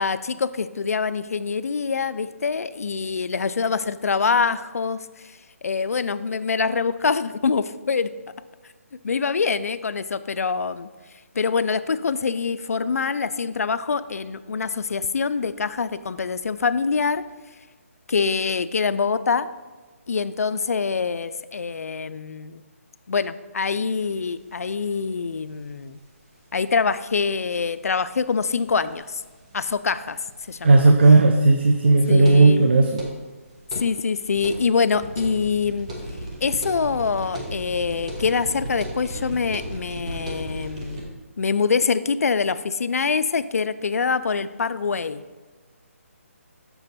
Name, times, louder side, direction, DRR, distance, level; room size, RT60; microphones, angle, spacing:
voice 1, 0.0-5.0 5.6-8.1 9.0-10.9 11.4-17.2 18.1-19.5 20.1-22.6 23.1-26.0 26.5-29.2 29.5-30.2 30.5-30.9 32.1-32.7 33.8-35.9 36.4-45.2, left 5 dB, 80° left, 14 dB, 0.4 m, -25 dB
sound 1, 24.0-24.1 24.3-24.4 24.6-24.7 26.1-26.2 26.7-26.8 27.2-27.3 27.5-27.6 27.8-27.9 28.3-33.9 34.1-41.0, right 1 dB, 25° right, 1.0 m, -36 dB
voice 2, 30.6-33.0, right 3 dB, 45° right, 4 dB, 0.5 m, -15 dB
6.9 x 5.2 x 4.1 m, 1.3 s
hypercardioid pair, 175°, 8 cm